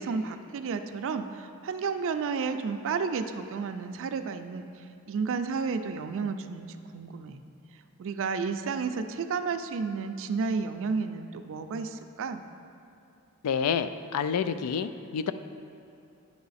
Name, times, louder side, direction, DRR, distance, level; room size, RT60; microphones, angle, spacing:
voice 1, 0.0-7.4 8.0-12.4, right 5 dB, 60° right, 8 dB, 0.4 m, -32 dB
voice 2, 13.4-15.3, left 7 dB, 85° left, 12 dB, 0.3 m, -28 dB
9.4 x 4.8 x 4.0 m, 2.7 s
head